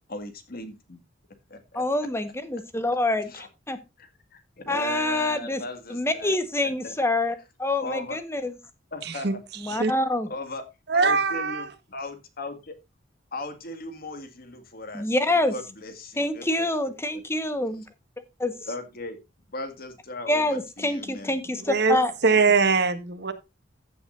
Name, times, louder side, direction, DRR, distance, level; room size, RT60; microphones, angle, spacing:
voice 1, 0.1-1.0 1.5-1.8 3.2-3.5 4.0-6.9 7.8-8.2 8.9-9.3 10.3-10.6 10.9-12.8 13.3-15.1 15.5-17.2 18.7-19.2 19.5-21.4 22.5-22.6, left 2 dB, 50° left, 9 dB, 1.9 m, -37 dB
voice 2, 1.7-3.8 4.7-5.6 5.9-8.5 9.6-10.3 14.9-15.5 16.2-17.8 18.4-18.5 20.3-22.1, left 1 dB, 15° left, 10 dB, 1.2 m, -26 dB
voice 3, 9.0-9.3 9.7-9.9 10.9-11.7 21.6-23.3, right 4 dB, 60° right, 8 dB, 1.5 m, -22 dB
15.0 x 7.7 x 2.5 m, 0.24 s
head